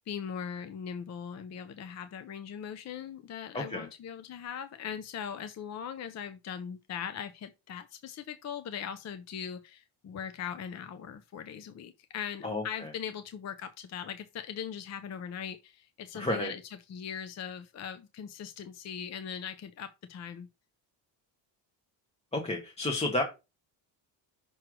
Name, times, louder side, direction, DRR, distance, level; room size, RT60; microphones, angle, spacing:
voice 1, 0.0-16.6 16.9-20.5, left 8 dB, 35° left, 0.5 m, -40 dB
voice 2, 3.5-3.9 12.4-12.9 16.1-16.5 22.3-23.2, left 1 dB, 15° left, 1.0 m, -31 dB
6.2 x 3.2 x 5.9 m
cardioid pair, 150°, 46 cm